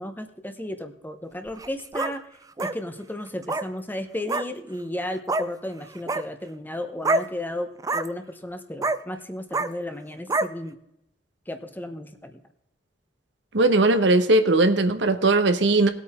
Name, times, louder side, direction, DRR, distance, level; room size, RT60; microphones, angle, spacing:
voice 1, 0.0-2.2 2.6-10.8 11.5-12.4, left 1 dB, 10° left, 7 dB, 1.0 m, -34 dB
sound 1, 1.5-2.1 2.6-2.7 3.4-3.7 4.3-4.4 5.3-5.5 5.9-6.2 7.0-7.3 7.8-8.1 8.8-9.0 9.5-9.7 10.3-10.5, right 2 dB, 20° right, 0.5 m, -25 dB
voice 2, 13.5-15.9, right 2 dB, 75° right, 9 dB, 1.1 m, -19 dB
19.0 x 8.5 x 3.7 m, 0.82 s
head